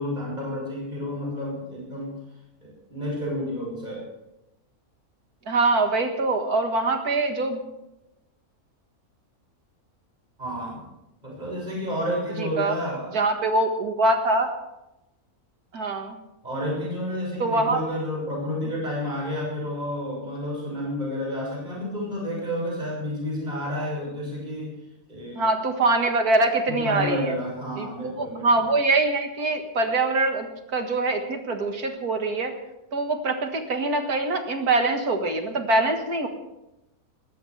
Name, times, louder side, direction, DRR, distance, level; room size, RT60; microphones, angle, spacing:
voice 1, 0.0-2.1 2.6-4.0 10.4-10.9 11.2-13.1 16.4-24.7 25.1-25.5 26.7-28.7, left 1 dB, 30° right, -3 dB, 6.6 m, -30 dB
voice 2, 5.5-7.7 12.4-12.8 13.1-14.5 15.7-16.2 17.4-17.8 25.4-27.4 27.8-32.5 32.9-36.3, right 2 dB, 80° right, 5 dB, 2.3 m, -24 dB
20.0 x 20.0 x 3.4 m, 0.89 s
omnidirectional pair, 1.6 m